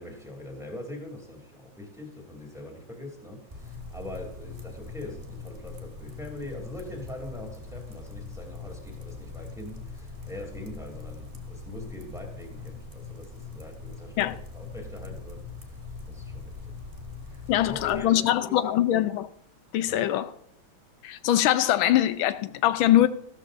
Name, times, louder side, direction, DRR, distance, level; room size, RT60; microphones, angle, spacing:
voice 1, 0.0-15.8 16.1-16.8 17.2-18.9 19.9-20.1, left 1 dB, ahead, 2.7 m, -42 dB
sound 1, 3.5-18.0, left 4 dB, 20° right, 1.1 m, -41 dB
voice 2, 17.5-19.3 19.7-20.3 21.0-23.1, left 12 dB, 85° left, 1.4 m, -22 dB
14.5 x 13.0 x 2.6 m
omnidirectional pair, 2.2 m